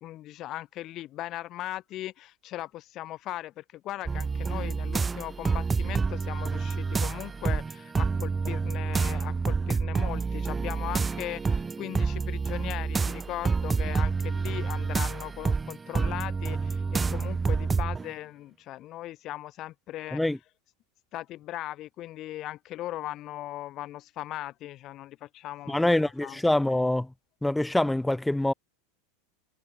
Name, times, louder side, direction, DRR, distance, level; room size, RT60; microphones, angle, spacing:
voice 1, 0.0-20.2 21.1-26.4, left 15 dB, 35° left, 1.5 m, -38 dB
sound 1, 4.1-18.1, right 4 dB, 15° right, 1.5 m, -28 dB
voice 2, 25.7-27.1 27.4-28.5, left 1 dB, 5° left, 1.2 m, -25 dB
figure-of-eight pair, 85°, 0 cm